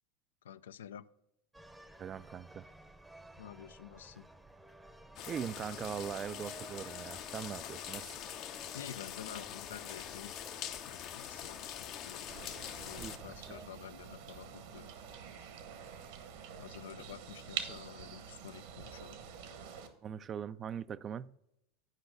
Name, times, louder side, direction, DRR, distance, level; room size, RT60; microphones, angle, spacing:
voice 1, 0.4-1.1 3.4-4.3 8.7-10.3 10.8-12.3 12.7-14.9 16.6-19.2, left 9 dB, 80° left, 0.3 m, -49 dB
sound 1, 1.5-13.7, right 1 dB, 5° right, 0.7 m, -55 dB
voice 2, 2.0-2.7 5.3-8.2 13.0-13.1 17.7-17.8 20.0-21.4, right 8 dB, 35° right, 0.3 m, -41 dB
sound 2, 5.2-13.2, left 10 dB, 50° left, 0.7 m, -44 dB
sound 3, 12.3-19.9, right 8 dB, 70° right, 1.1 m, -46 dB
8.2 x 5.1 x 6.1 m
hypercardioid pair, 90°, 0 cm